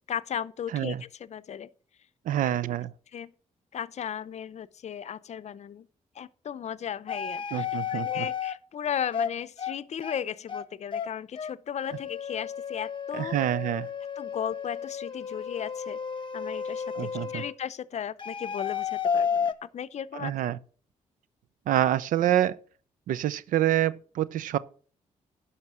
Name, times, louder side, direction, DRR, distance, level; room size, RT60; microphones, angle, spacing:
voice 1, 0.1-1.7 2.4-2.5 3.1-3.3 3.7-5.9 6.2-13.3 14.2-16.0 16.3-20.3, left 9 dB, 55° left, 0.6 m, -36 dB
voice 2, 2.3-2.9 7.5-8.3 13.1-13.9 17.0-17.4 20.2-20.6 21.7-22.6 23.1-24.6, right 12 dB, 85° right, 0.6 m, -26 dB
sound 1, 7.1-8.5 9.1-9.3 9.6-9.8 10.0-10.2 10.5-10.6 10.9-11.1 11.4-11.5 11.8-17.5 18.2-19.5, left 7 dB, 35° left, 1.1 m, -32 dB
11.0 x 5.7 x 6.2 m
cardioid pair, 75°, 13 cm